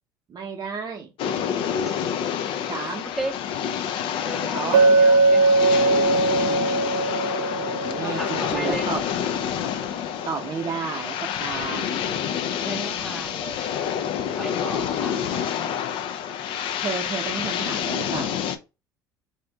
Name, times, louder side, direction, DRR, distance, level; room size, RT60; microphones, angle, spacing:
voice 1, 0.3-1.1 2.7-3.1 4.5-4.8 7.5-9.0 10.2-12.0 16.8-18.3, right 5 dB, 40° right, 0.7 m, -32 dB
sound 1, 1.2-18.6, left 8 dB, 55° left, 0.4 m, -28 dB
voice 2, 3.0-3.4 4.1-6.0 8.0-8.9 12.7-14.0 14.4-16.0, right 1 dB, 5° right, 0.9 m, -35 dB
Chink clink, 4.7-8.7, right 3 dB, 80° right, 0.4 m, -20 dB
2.7 x 2.5 x 3.3 m
hypercardioid pair, 60°, 11 cm